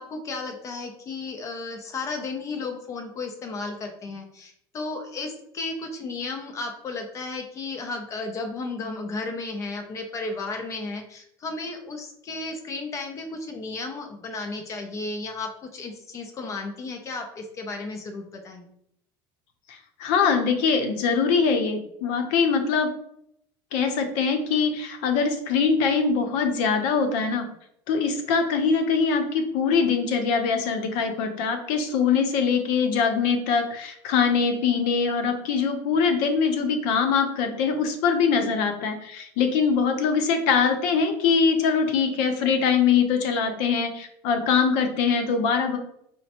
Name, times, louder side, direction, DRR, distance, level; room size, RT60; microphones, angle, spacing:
voice 1, 0.0-18.7, left 3 dB, 30° left, 4 dB, 0.6 m, -34 dB
voice 2, 20.0-22.9 23.7-27.5 27.9-45.8, left 5 dB, 70° left, 6 dB, 0.7 m, -23 dB
5.0 x 2.1 x 2.9 m, 0.72 s
cardioid pair, 150°, 11 cm